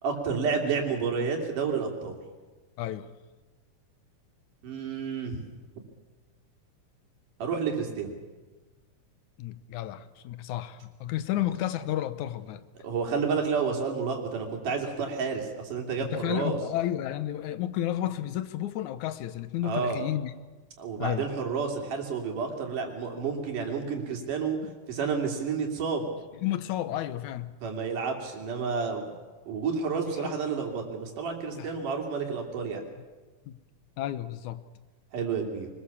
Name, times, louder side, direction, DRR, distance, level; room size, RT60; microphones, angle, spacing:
voice 1, 0.0-2.2 4.6-5.4 7.4-8.1 12.8-16.6 19.6-20.0 20.8-24.6 24.9-26.1 27.6-29.1 29.5-32.8 35.1-35.7, right 5 dB, 85° right, 2 dB, 4.4 m, -30 dB
voice 2, 2.8-3.1 9.4-12.7 16.0-20.3 21.0-21.3 26.4-27.6 30.2-30.3 31.5-31.7 33.5-33.6 34.0-34.6, left 12 dB, 75° left, 13 dB, 2.2 m, -32 dB
24.0 x 21.0 x 7.2 m, 1.3 s
omnidirectional pair, 3.6 m